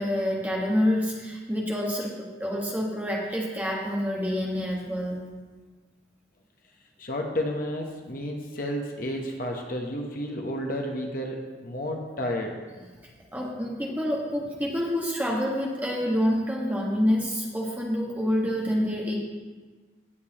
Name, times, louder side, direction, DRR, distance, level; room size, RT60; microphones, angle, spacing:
voice 1, 0.0-5.2 13.3-19.2, equal, 10° right, -3 dB, 1.4 m, -27 dB
voice 2, 7.0-12.5, left 1 dB, 45° left, 1 dB, 0.9 m, -31 dB
17.0 x 6.8 x 2.9 m, 1.4 s
head